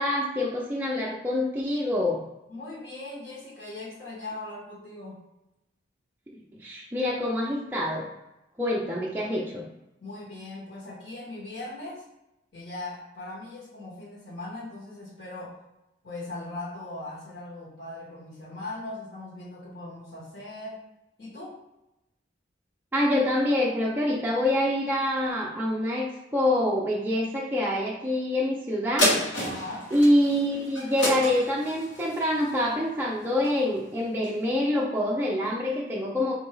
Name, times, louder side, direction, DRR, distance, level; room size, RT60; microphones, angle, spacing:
voice 1, 0.0-2.2 6.6-8.1 8.6-9.6 22.9-29.1 29.9-36.3, left 1 dB, 10° right, -4 dB, 0.4 m, -26 dB
voice 2, 2.5-5.2 10.0-12.0 12.5-15.6 16.0-20.8 21.2-21.6 29.4-29.9, left 2 dB, 55° left, -8 dB, 1.2 m, -39 dB
sound 1, 29.0-33.7 34.2-34.3, left 1 dB, 75° left, 1.2 m, -30 dB
3.7 x 2.6 x 3.3 m, 0.92 s
head